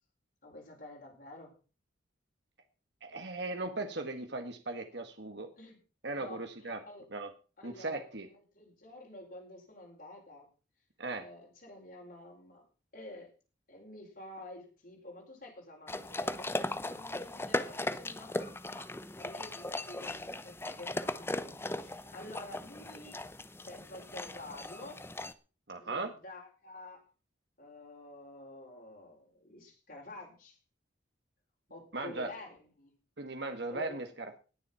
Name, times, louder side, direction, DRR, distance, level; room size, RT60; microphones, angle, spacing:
voice 1, 0.4-1.5 5.6-5.8 6.2-7.1 7.6-8.0 8.3-10.5 11.2-12.6 12.9-13.3 13.7-23.2 23.6-25.0 25.8-27.0 27.6-30.6 31.7-32.9 33.7-34.0, left 1 dB, 45° left, -2 dB, 5.0 m, -49 dB
voice 2, 3.0-5.5 6.0-6.8 7.1-7.3 7.6-8.3 11.0-11.3 25.7-26.1 31.9-32.3 33.2-34.3, right 2 dB, 60° right, 6 dB, 1.6 m, -38 dB
sound 1, 15.9-25.3, left 2 dB, 10° left, 0.7 m, -38 dB
19.5 x 7.2 x 5.8 m, 0.36 s
head